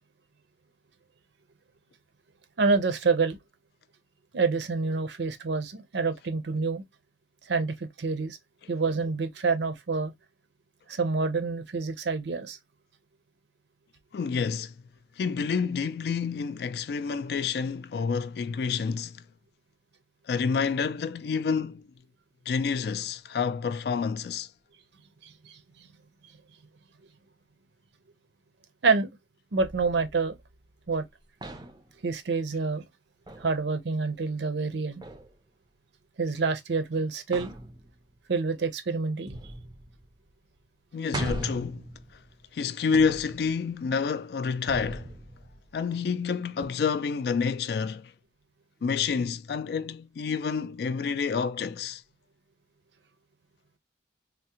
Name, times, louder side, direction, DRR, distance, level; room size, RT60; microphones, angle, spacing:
voice 1, 2.6-3.4 4.3-6.8 7.5-8.4 8.7-10.1 10.9-12.6 25.2-25.6 28.8-29.1 29.5-30.4 30.9-31.0 32.0-32.8 33.4-35.0 36.2-37.5 38.3-39.4, right 4 dB, 70° right, 0.6 m, -27 dB
voice 2, 14.1-14.7 15.2-19.2 20.3-21.9 22.5-24.5 40.9-41.8 42.5-45.1 45.7-48.1 48.8-52.0, left 5 dB, 60° left, 0.3 m, -28 dB
sound 1, 29.6-31.0 31.4-32.0 33.3-33.6 35.0-35.3 37.3-38.2 39.3-40.3 40.6-40.7 41.1-42.5 42.9-43.7 44.7-46.0 46.6-46.7, right 1 dB, 20° right, 0.4 m, -40 dB
3.5 x 2.1 x 2.8 m
head